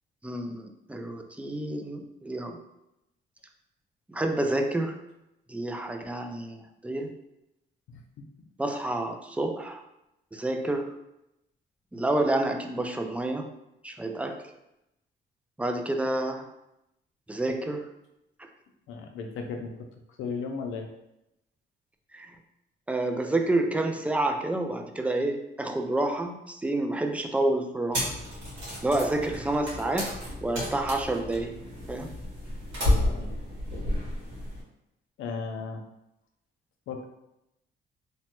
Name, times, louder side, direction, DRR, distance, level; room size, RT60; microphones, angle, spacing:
voice 1, 0.2-2.6 4.1-5.0 5.5-7.1 8.6-9.8 10.3-11.0 11.9-13.5 13.8-14.5 15.6-16.5 17.3-17.9 22.1-22.3 22.9-28.1 28.8-31.6 31.9-32.1, right 2 dB, 5° right, 4 dB, 0.3 m, -29 dB
voice 2, 18.9-19.9 20.2-20.9 32.8-33.3 35.2-35.8 36.9-37.1, left 4 dB, 80° left, 3 dB, 0.5 m, -35 dB
sound 1, 27.9-34.6, left 1 dB, 85° right, 1.5 m, -31 dB
3.0 x 2.1 x 2.9 m, 0.87 s
cardioid pair, 90°, 20 cm